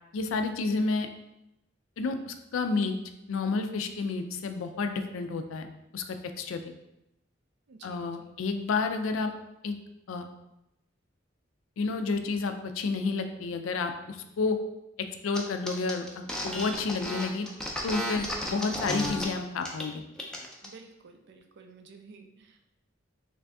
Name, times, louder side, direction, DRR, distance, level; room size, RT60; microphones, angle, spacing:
voice 1, 0.1-1.1 2.0-3.0 3.3-6.7 7.8-9.3 9.6-9.8 10.1-10.3 11.8-14.6 15.2-17.5 17.8-20.0, left 4 dB, 75° left, 7 dB, 0.4 m, -30 dB
voice 2, 7.7-8.3 20.6-22.7, right 4 dB, 60° right, 5 dB, 0.4 m, -52 dB
sound 1, 15.3-15.4 15.7-19.2 19.6-19.8 20.2-20.7, left 1 dB, 5° left, 0.4 m, -33 dB
3.3 x 2.6 x 3.4 m, 0.90 s
head